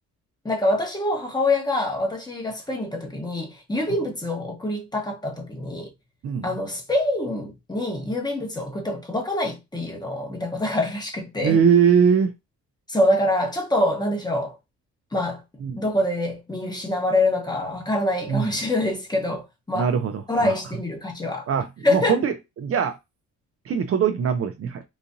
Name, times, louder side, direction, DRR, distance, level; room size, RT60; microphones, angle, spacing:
voice 1, 0.4-5.9 6.4-11.6 12.9-14.6 15.1-15.4 15.8-19.9 20.3-21.5 21.8-22.2, left 1 dB, 15° left, 1.2 m, -25 dB
voice 2, 11.4-12.3 15.6-15.8 18.3-18.6 19.7-20.5 21.5-23.0 23.7-24.8, right 7 dB, 50° right, 0.6 m, -21 dB
4.0 x 2.5 x 2.6 m
cardioid pair, 90°, 30 cm